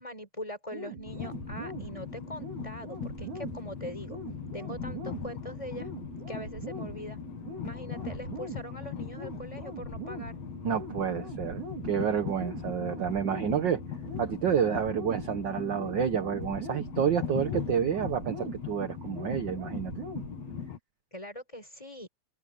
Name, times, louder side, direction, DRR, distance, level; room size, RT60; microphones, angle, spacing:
voice 1, 0.0-4.2 4.5-5.9 6.3-7.2 7.6-10.4 21.1-22.1, equal, 10° left, 5.9 m, -42 dB
sound 1, 0.7-20.7, right 4 dB, 80° right, 5.3 m, -43 dB
Train, 1.1-20.8, left 8 dB, 65° left, 2.7 m, -40 dB
voice 2, 10.6-13.8 14.2-19.9, right 8 dB, 55° right, 1.3 m, -29 dB
omnidirectional pair, 3.4 m